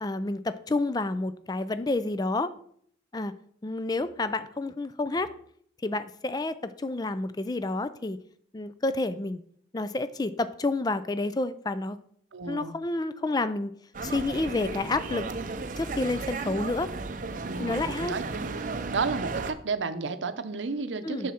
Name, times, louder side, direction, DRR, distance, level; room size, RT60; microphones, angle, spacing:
voice 1, 0.0-2.5 3.1-3.3 3.6-5.3 5.8-8.2 8.5-9.4 9.7-12.0 12.5-13.7 14.0-15.3 15.8-16.9 17.6-18.2 21.0-21.3, left 2 dB, 20° left, 13 dB, 0.4 m, -29 dB
voice 2, 12.3-12.7 17.4-18.6 18.9-21.3, right 4 dB, 90° right, 11 dB, 0.6 m, -32 dB
sound 1, 13.9-19.5, right 3 dB, 45° right, 0.6 m, -34 dB
7.0 x 6.4 x 4.3 m, 0.64 s
head